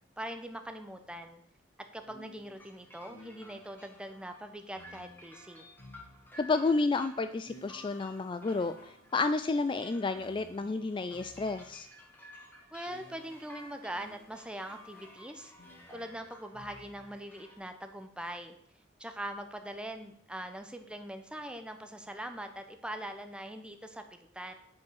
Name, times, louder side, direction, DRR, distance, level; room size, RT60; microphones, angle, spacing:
voice 1, 0.2-1.4 1.9-5.6 12.7-15.5 15.9-18.5 19.0-24.5, right 1 dB, 5° right, 6 dB, 1.0 m, -42 dB
sound 1, 1.0-1.2 2.1-3.9 4.7-6.7 7.4-12.0 12.8-17.3, left 1 dB, 55° left, 2.4 m, -57 dB
sound 2, 2.5-17.6, left 1 dB, 10° left, 1.8 m, -55 dB
voice 2, 6.4-11.9, left 3 dB, 25° left, 11 dB, 0.3 m, -31 dB
9.4 x 5.5 x 6.4 m, 0.71 s
head